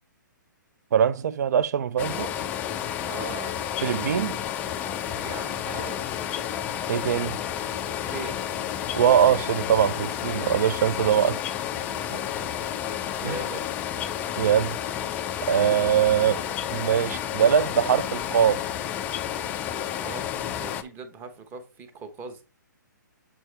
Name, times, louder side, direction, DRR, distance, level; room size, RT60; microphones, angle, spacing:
voice 1, 0.9-2.3 3.8-4.4 6.9-7.4 8.9-11.4 13.2-13.4 14.4-14.8 15.5-16.4 16.7-18.6, right 9 dB, 55° right, 0.5 m, -22 dB
sound 1, 2.0-20.8, left 10 dB, 15° left, 0.3 m, -31 dB
voice 2, 3.1-3.6 5.2-6.1 7.8-8.4 11.9-13.6 19.6-20.3 20.6-22.4, right 3 dB, 20° right, 0.9 m, -40 dB
7.2 x 4.6 x 3.3 m
hypercardioid pair, 150°, 11 cm